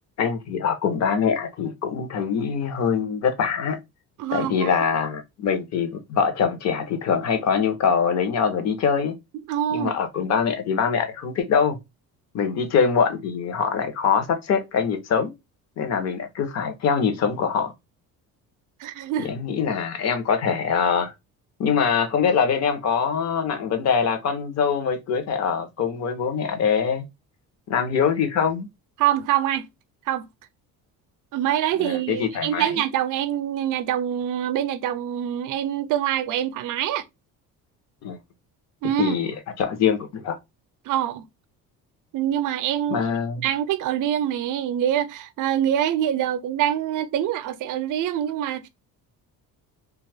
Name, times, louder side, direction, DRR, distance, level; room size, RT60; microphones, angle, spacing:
voice 1, 0.2-3.8 4.3-9.1 9.7-11.8 12.3-15.3 15.8-17.7 19.2-21.1 21.6-27.0 27.7-28.7 31.8-32.7 38.0-38.2 39.0-39.3 39.6-40.4 42.9-43.4, left 6 dB, 50° left, 0.7 m, -23 dB
voice 2, 4.2-4.7 9.5-9.9 18.8-19.3 29.0-29.7 30.1-30.3 31.3-37.0 38.8-39.2 40.9-41.3 42.1-43.1 43.4-48.7, right 11 dB, 60° right, 0.5 m, -25 dB
2.5 x 2.3 x 3.3 m
cardioid pair, 140°, 35 cm